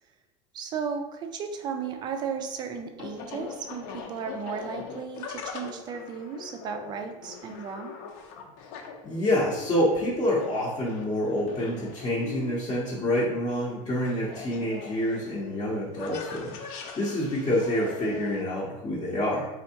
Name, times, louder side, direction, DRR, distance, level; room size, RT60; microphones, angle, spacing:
voice 1, 0.5-7.9, right 6 dB, 25° right, 6 dB, 0.4 m, -35 dB
sound 1, 1.8-18.4, left 5 dB, 55° left, 0.7 m, -42 dB
voice 2, 9.0-19.5, left 1 dB, 20° left, -6 dB, 0.7 m, -27 dB
4.4 x 3.4 x 2.8 m, 1.0 s
cardioid pair, 165°, 16 cm